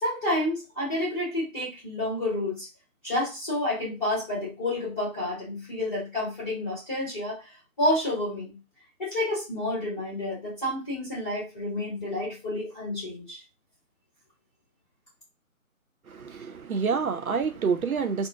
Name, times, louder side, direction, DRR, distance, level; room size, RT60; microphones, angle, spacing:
voice 1, 0.0-2.7 3.0-7.4 7.8-8.5 9.0-13.4, left 1 dB, 5° left, 1.2 m, -29 dB
voice 2, 16.1-18.3, right 5 dB, 75° right, 0.6 m, -28 dB
2.6 x 2.4 x 3.4 m
figure-of-eight pair, 155°, 43 cm